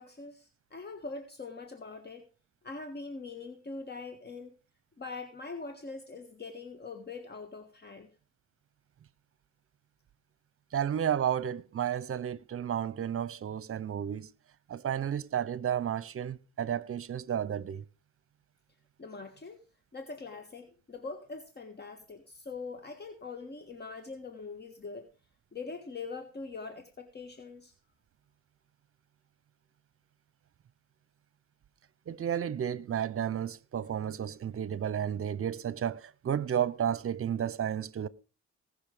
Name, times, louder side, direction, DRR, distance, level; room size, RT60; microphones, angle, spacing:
voice 1, 0.0-2.3 2.6-4.5 5.0-8.1 19.0-19.6 19.9-25.1 25.5-27.7, left 4 dB, 35° left, 1.6 m, -43 dB
voice 2, 10.7-14.3 14.7-17.8 32.1-38.1, right 9 dB, 45° right, 0.9 m, -32 dB
19.0 x 6.4 x 5.1 m
cardioid pair, 90°, 30 cm